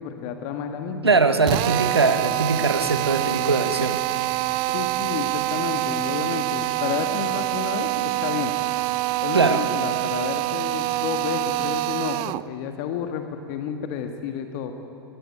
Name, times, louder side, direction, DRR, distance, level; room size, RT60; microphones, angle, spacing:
voice 1, 0.0-1.2 4.7-8.5 9.2-14.7, left 8 dB, 45° left, 6 dB, 1.7 m, -31 dB
voice 2, 1.0-4.0 9.3-9.7, right 3 dB, 85° right, 9 dB, 1.7 m, -21 dB
Drill, 1.4-12.5, right 20 dB, 35° right, 0.5 m, -26 dB
23.0 x 20.0 x 9.4 m, 2.7 s
figure-of-eight pair, 100°, 13 cm